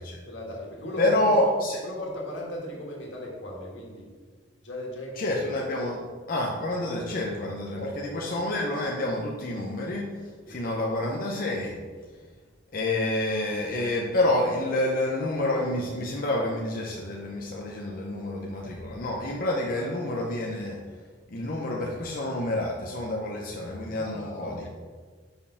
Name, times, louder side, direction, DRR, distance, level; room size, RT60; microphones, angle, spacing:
voice 1, 0.2-1.4 1.8-4.1 4.6-5.3 7.8-8.2 10.4-10.6 19.7-19.9 23.9-24.7, left 1 dB, 85° left, -2 dB, 1.8 m, -37 dB
voice 2, 1.0-1.8 5.2-11.8 12.7-20.8 21.3-24.7, left 1 dB, 50° left, -2 dB, 0.7 m, -28 dB
5.2 x 4.7 x 5.6 m, 1.5 s
head